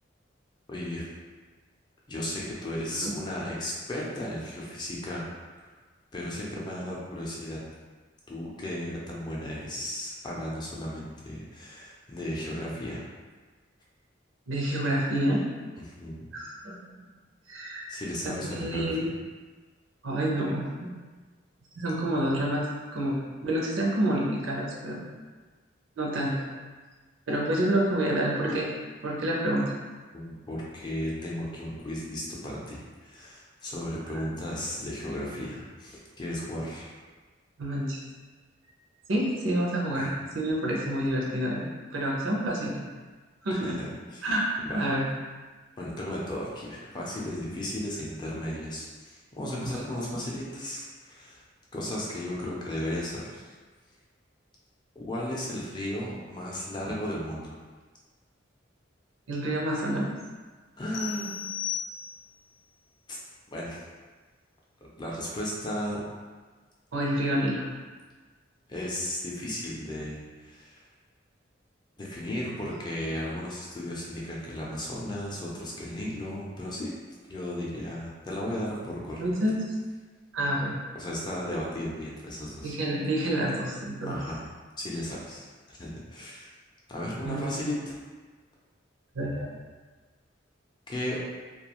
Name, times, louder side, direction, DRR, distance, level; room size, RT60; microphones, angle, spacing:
voice 1, 0.7-1.1 2.1-5.3 5.6-5.7 6.1-7.6 8.3-13.0 15.9-16.3 17.9-19.1 30.1-37.0 39.9-40.1 43.6-44.3 44.7-44.9 45.8-51.4 51.7-53.5 55.0-57.6 60.8-61.3 63.1-63.2 63.5-63.8 64.8-66.1 68.7-70.8 72.0-76.9 77.3-79.2 80.9-82.7 84.1-84.5 84.8-86.5 86.9-88.0 90.9-91.2, left 1 dB, 25° left, -5 dB, 0.4 m, -35 dB
voice 2, 14.5-15.4 16.3-16.9 17.5-17.8 18.2-19.1 20.0-20.9 21.8-22.7 22.9-25.0 26.0-26.3 27.3-28.7 29.0-29.6 37.6-38.0 39.1-41.7 41.9-42.8 43.4-43.8 44.2-44.5 44.7-45.0 49.6-49.7 59.3-60.1 66.9-67.7 79.2-79.5 80.3-80.8 82.6-84.2 87.2-87.4 89.1-89.5, right 1 dB, 80° right, -3 dB, 0.6 m, -28 dB
sound 1, 60.9-62.5, left 9 dB, 75° left, 0.5 m, -35 dB
2.3 x 2.3 x 2.9 m, 1.4 s
head